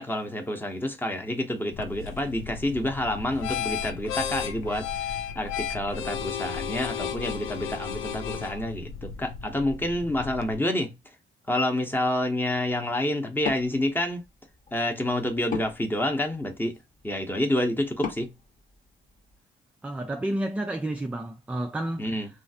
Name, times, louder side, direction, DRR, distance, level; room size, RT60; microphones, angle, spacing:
voice 1, 0.0-11.0 11.5-14.2 14.7-16.8 17.0-18.3 22.0-22.3, left 1 dB, 10° left, 0.7 m, -28 dB
sound 1, 1.7-10.5, left 8 dB, 80° left, 0.5 m, -34 dB
Wood, 13.3-19.4, left 5 dB, 45° left, 1.0 m, -40 dB
voice 2, 19.8-22.3, right 1 dB, 5° right, 0.3 m, -31 dB
3.1 x 2.4 x 2.7 m
cardioid pair, 90°, 20 cm